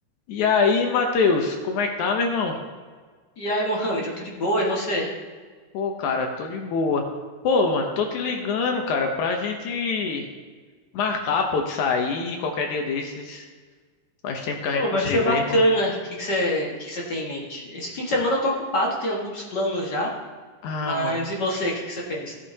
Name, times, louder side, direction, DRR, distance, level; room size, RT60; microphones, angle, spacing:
voice 1, 0.3-2.6 5.7-7.0 7.4-10.3 10.9-13.5 14.2-15.6 20.6-21.2, left 4 dB, 70° left, 3 dB, 2.1 m, -24 dB
voice 2, 3.4-5.1 14.7-20.1 20.8-22.3, equal, 40° left, -3 dB, 1.7 m, -25 dB
15.5 x 8.4 x 2.8 m, 1.5 s
omnidirectional pair, 3.9 m